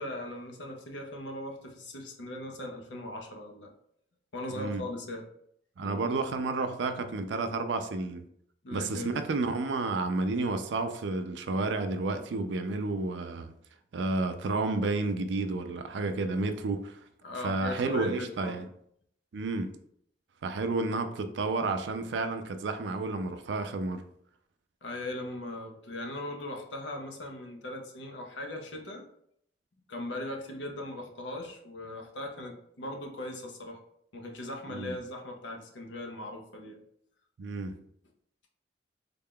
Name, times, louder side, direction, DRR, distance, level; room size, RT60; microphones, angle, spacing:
voice 1, 0.0-3.7 4.3-5.3 5.8-6.2 8.6-9.2 17.2-18.7 24.8-29.1 29.9-33.8 34.1-36.8, left 1 dB, 75° left, 0.7 m, -39 dB
voice 2, 4.5-4.8 5.8-8.2 8.7-13.5 13.9-17.0 17.4-18.6 19.3-19.7 20.4-24.0 34.7-34.9 37.4-37.8, right 3 dB, 70° right, 0.4 m, -31 dB
3.6 x 2.2 x 3.6 m
head